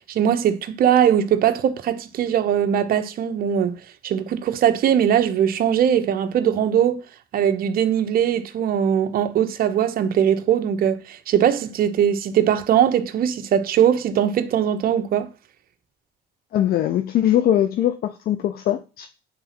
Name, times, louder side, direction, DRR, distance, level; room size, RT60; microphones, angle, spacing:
voice 1, 0.1-3.7 4.0-7.0 7.3-15.3, right 9 dB, 60° right, 1.1 m, -20 dB
voice 2, 16.5-19.1, left 11 dB, 65° left, 0.7 m, -21 dB
9.1 x 4.1 x 5.9 m
cardioid pair, 110°, 17 cm